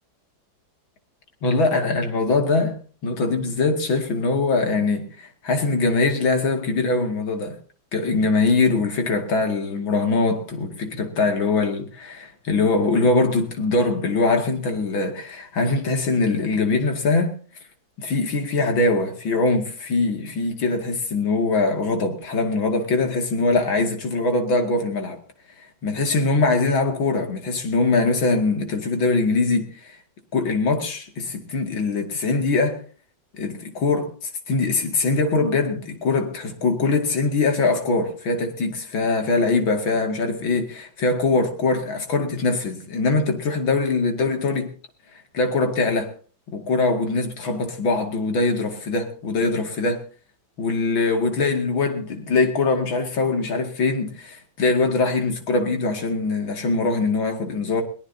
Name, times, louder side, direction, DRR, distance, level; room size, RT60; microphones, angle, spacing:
voice 1, 1.4-2.8 3.0-7.6 7.9-17.4 18.0-25.2 25.6-29.9 30.3-32.8 33.3-44.7 45.3-46.1 46.5-50.0 50.6-57.8, left 3 dB, 85° left, 3.1 m, -22 dB
22.5 x 18.0 x 2.8 m
omnidirectional pair, 2.1 m